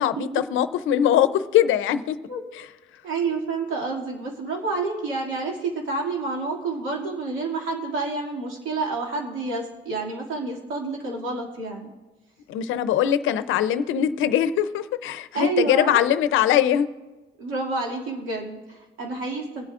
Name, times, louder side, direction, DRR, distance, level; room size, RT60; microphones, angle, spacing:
voice 1, 0.0-2.2 12.5-16.9, left 10 dB, 85° left, 13 dB, 0.6 m, -21 dB
voice 2, 3.0-11.9 15.3-16.1 17.4-19.6, right 3 dB, 85° right, -1 dB, 2.4 m, -29 dB
24.0 x 8.3 x 2.5 m, 1.2 s
cardioid pair, 90°, 20 cm